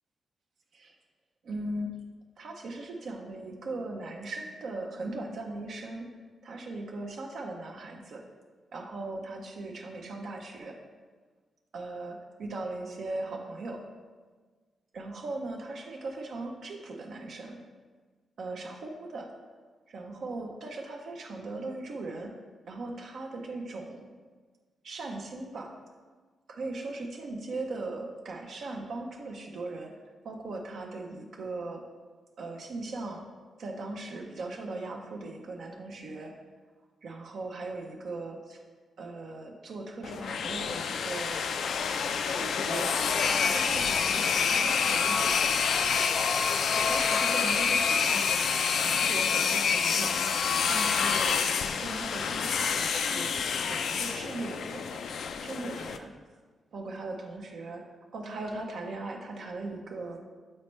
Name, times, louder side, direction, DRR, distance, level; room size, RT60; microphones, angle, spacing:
voice 1, 1.4-2.0 2.4-6.1 6.4-8.2 8.7-10.8 11.7-13.8 14.9-17.6 18.4-19.3 19.9-22.4 22.7-24.1 24.8-25.7 26.5-29.9 30.2-31.8 32.4-33.2 33.6-36.3 37.0-38.6 39.0-41.4 42.3-43.0 43.3-45.6 46.7-50.2 50.7-51.4 51.8-53.4 53.7-55.1 55.4-56.1 56.7-57.8 58.1-60.2, right 2 dB, 65° right, 1 dB, 0.6 m, -39 dB
sound 1, 40.0-56.0, left 6 dB, 75° left, 0.3 m, -27 dB
7.3 x 4.3 x 3.1 m, 1.4 s
wide cardioid pair, 130°, 0 cm